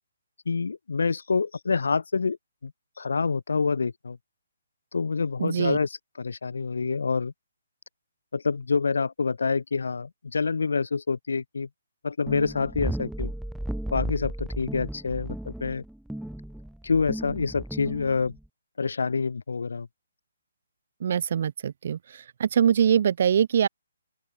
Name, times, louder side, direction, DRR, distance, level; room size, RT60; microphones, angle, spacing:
voice 1, 0.4-2.4 2.6-2.7 3.0-4.2 4.9-7.3 8.3-11.7 12.0-13.3 13.9-15.8 16.8-18.3 18.8-19.9, left 4 dB, 85° left, 3.3 m, -27 dB
voice 2, 5.4-5.8 21.0-22.0 22.4-23.7, right 8 dB, 35° right, 1.4 m, -23 dB
sound 1, 12.3-18.5, right 1 dB, ahead, 1.5 m, -35 dB
open air
hypercardioid pair, 180°, 0 cm